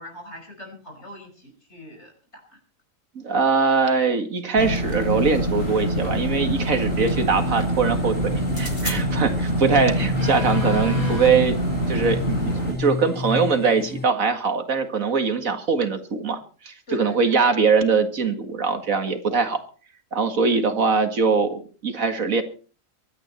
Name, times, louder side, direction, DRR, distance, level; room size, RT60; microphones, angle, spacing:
voice 1, 0.0-2.6 9.0-9.6 16.9-17.6 20.5-20.6, left 1 dB, 55° left, 3 dB, 5.8 m, -42 dB
voice 2, 3.2-11.6 11.9-16.4 16.6-19.6 20.1-22.4, right 5 dB, 85° right, 7 dB, 2.3 m, -22 dB
sound 1, 4.4-5.7 8.4-9.0, left 2 dB, 35° left, 3.0 m, -37 dB
sound 2, 4.6-12.7, equal, 70° left, 6.7 m, -25 dB
sound 3, 5.7-14.1, left 3 dB, 15° left, 0.3 m, -32 dB
24.0 x 10.0 x 4.4 m, 0.38 s
omnidirectional pair, 1.4 m